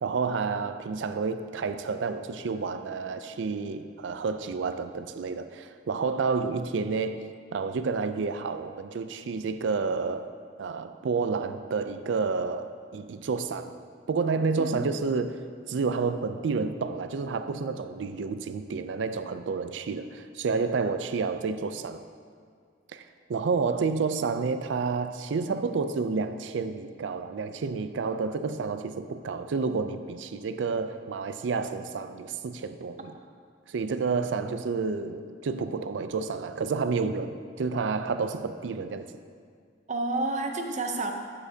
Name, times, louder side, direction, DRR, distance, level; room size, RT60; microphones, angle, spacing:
voice 1, 0.0-7.2 7.5-10.3 10.6-13.7 14.1-15.4 15.7-22.0 22.9-33.1 33.7-39.1, right 4 dB, 90° right, 10 dB, 0.4 m, -30 dB
voice 2, 39.9-41.1, right 2 dB, 40° right, 4 dB, 0.6 m, -30 dB
9.9 x 7.1 x 2.8 m, 2.1 s
head